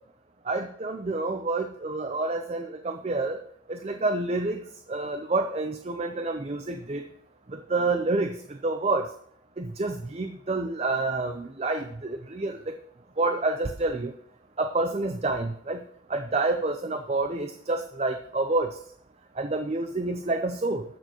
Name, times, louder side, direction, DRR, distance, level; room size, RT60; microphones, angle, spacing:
voice 1, 0.5-3.4 3.7-4.6 4.9-7.0 7.5-9.1 9.6-12.6 13.2-14.1 14.6-15.8 16.1-18.8 19.4-20.8, right 2 dB, 30° right, 6 dB, 0.5 m, -28 dB
20.5 x 6.9 x 3.0 m, 0.69 s
head